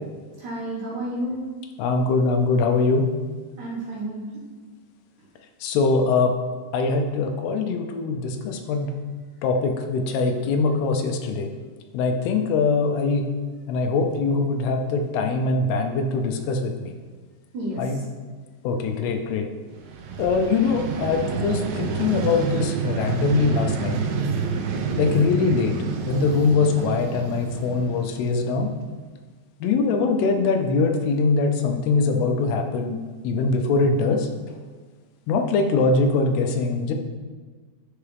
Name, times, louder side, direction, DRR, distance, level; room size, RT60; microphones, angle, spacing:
voice 1, 0.4-1.4 3.6-4.4 17.5-17.8, right 1 dB, 60° right, -6 dB, 2.5 m, -31 dB
voice 2, 1.8-3.1 5.6-6.3 6.7-8.9 9.4-11.5 11.9-13.2 13.7-16.9 17.8-18.0 18.6-19.5 20.2-24.0 24.9-25.8 26.1-28.7 29.6-33.0 33.2-34.3 35.3-36.9, left 4 dB, 85° left, 5 dB, 2.7 m, -22 dB
Vehicle, 19.8-28.7, right 5 dB, 85° right, 2.8 m, -28 dB
10.0 x 4.7 x 3.4 m, 1.4 s
omnidirectional pair, 4.6 m